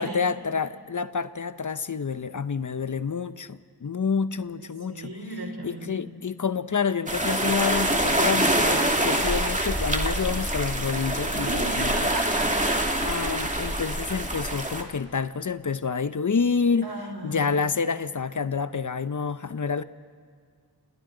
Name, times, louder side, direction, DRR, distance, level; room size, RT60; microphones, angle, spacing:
voice 1, 0.0-5.1 5.6-12.1 13.0-16.9 17.2-19.8, left 5 dB, 50° left, 13 dB, 0.8 m, -28 dB
voice 2, 4.9-6.1 11.3-12.7 16.8-17.7, right 1 dB, 70° right, 2 dB, 4.2 m, -36 dB
sound 1, 7.1-14.8, right 1 dB, 20° right, 2.4 m, -25 dB
29.5 x 28.0 x 3.9 m, 2.1 s
cardioid pair, 40°, 40 cm